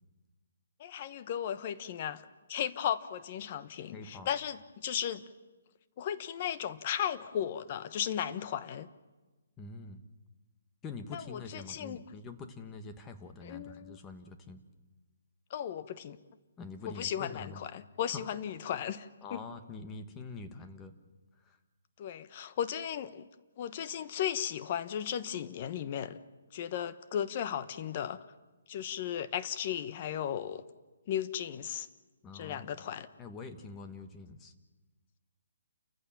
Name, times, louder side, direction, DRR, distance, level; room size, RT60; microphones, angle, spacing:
voice 1, 0.8-2.2 2.5-5.3 6.0-8.9 11.1-12.0 13.4-14.0 15.5-16.2 16.9-19.4 22.0-23.3 23.6-26.2 26.5-28.2 28.7-30.6 31.1-31.9 32.3-33.1, left 9 dB, 35° left, 13 dB, 1.0 m, -35 dB
voice 2, 3.9-4.3 9.6-10.0 10.8-14.6 16.6-17.6 18.1-18.2 19.2-20.9 21.3-21.6 32.2-32.9 33.2-34.5, left 4 dB, 15° left, 7 dB, 1.3 m, -45 dB
29.5 x 15.0 x 7.3 m, 1.2 s
hypercardioid pair, 165°, 0 cm